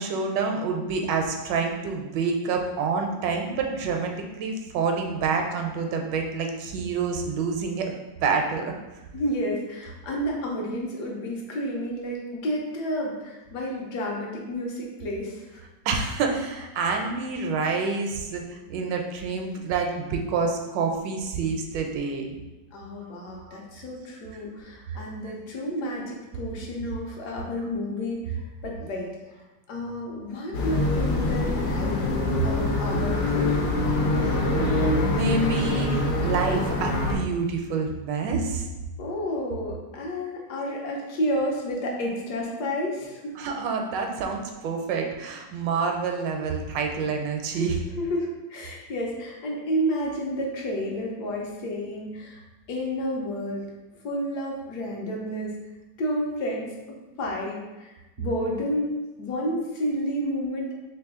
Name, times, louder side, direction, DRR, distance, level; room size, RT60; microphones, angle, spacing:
voice 1, 0.0-7.9 8.2-8.6 15.8-18.4 18.7-22.3 23.4-23.6 24.3-24.4 24.9-25.3 34.2-38.7 43.4-47.8, right 4 dB, 80° right, 3 dB, 1.2 m, -27 dB
voice 2, 9.1-15.6 22.7-28.4 28.6-29.1 29.7-33.6 39.0-43.3 47.5-47.7 48.0-52.4 52.7-53.7 54.0-55.5 56.0-56.7 57.2-57.9 58.2-58.9 59.2-60.8, equal, 70° left, -2 dB, 1.2 m, -30 dB
sound 1, 30.5-37.1, left 2 dB, 85° left, 1.4 m, -25 dB
3.3 x 2.9 x 3.5 m, 1.1 s
omnidirectional pair, 1.9 m